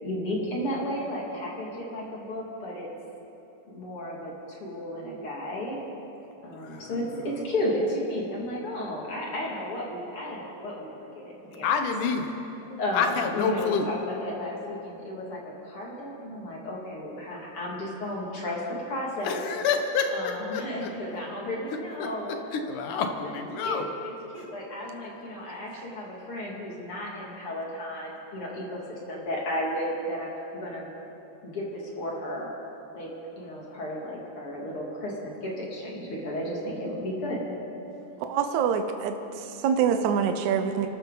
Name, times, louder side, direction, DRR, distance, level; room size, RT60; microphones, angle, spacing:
voice 1, 0.0-2.9 3.7-5.8 6.4-11.7 12.7-19.4 20.1-22.4 22.9-23.1 23.6-30.9 31.4-32.5 32.9-33.1 33.4-37.4, left 1 dB, 45° left, -3 dB, 3.0 m, -33 dB
voice 2, 6.5-7.2 11.6-12.3 12.9-13.9 19.2-20.9 21.7-23.9, left 5 dB, 90° left, 5 dB, 2.7 m, -28 dB
voice 3, 38.2-40.9, right 7 dB, 75° right, 7 dB, 2.1 m, -25 dB
26.0 x 13.0 x 4.0 m, 2.9 s
omnidirectional pair, 3.5 m